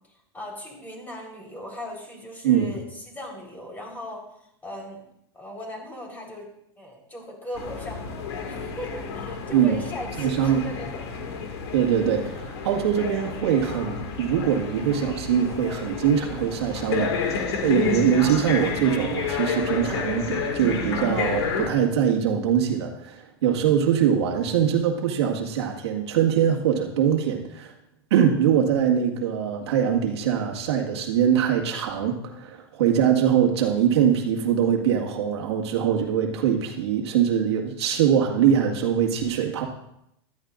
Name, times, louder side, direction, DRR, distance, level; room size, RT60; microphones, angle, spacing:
voice 1, 0.1-5.1 5.3-6.5 6.8-11.0, equal, 15° left, -1 dB, 4.0 m, -38 dB
voice 2, 2.4-2.8 9.5-9.8 10.2-10.6 11.7-27.7 28.1-39.7, right 8 dB, 85° right, 1 dB, 1.9 m, -23 dB
sound 1, 7.6-21.7, left 5 dB, 85° left, 2.1 m, -30 dB
15.5 x 12.5 x 2.5 m, 0.77 s
supercardioid pair, 130°, 13 cm